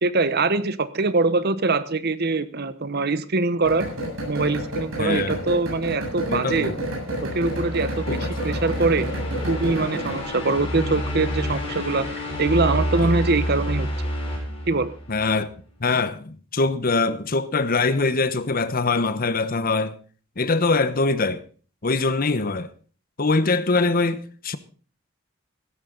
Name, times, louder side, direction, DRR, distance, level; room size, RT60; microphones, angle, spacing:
voice 1, 0.0-3.9 4.2-6.7 7.3-9.1 9.5-13.9 14.7-14.9, right 3 dB, 50° right, 1.0 m, -23 dB
sound 1, 3.6-10.3, right 1 dB, 80° right, 7.7 m, -30 dB
voice 2, 5.0-5.5 6.3-6.8 8.1-8.3 15.1-15.5 15.8-19.9 20.4-21.4 21.8-22.7 23.2-24.6, left 3 dB, 45° left, 1.0 m, -23 dB
sound 2, 7.0-15.3, equal, 30° left, 7.6 m, -29 dB
16.0 x 13.5 x 3.9 m
head